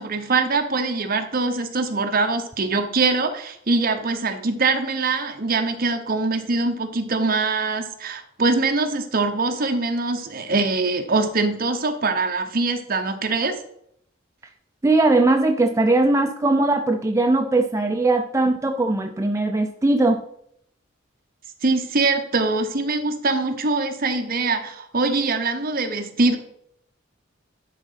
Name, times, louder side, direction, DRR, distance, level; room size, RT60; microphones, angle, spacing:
voice 1, 0.0-13.6 21.6-26.4, right 3 dB, 45° right, 6 dB, 1.0 m, -23 dB
voice 2, 14.8-20.2, right 2 dB, 15° right, 5 dB, 0.4 m, -19 dB
11.0 x 3.9 x 5.7 m, 0.71 s
head